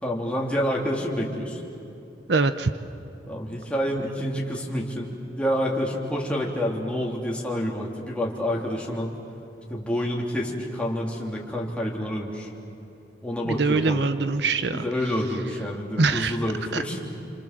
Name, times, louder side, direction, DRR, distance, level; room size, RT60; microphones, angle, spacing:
voice 1, 0.0-1.6 3.3-9.1 9.7-12.5 13.2-14.0 14.7-17.0, equal, 5° left, -2 dB, 3.3 m, -28 dB
voice 2, 2.3-2.7 13.4-14.8 16.0-16.4 16.7-16.8, right 3 dB, 65° right, 11 dB, 0.8 m, -23 dB
29.0 x 27.0 x 7.6 m, 2.9 s
head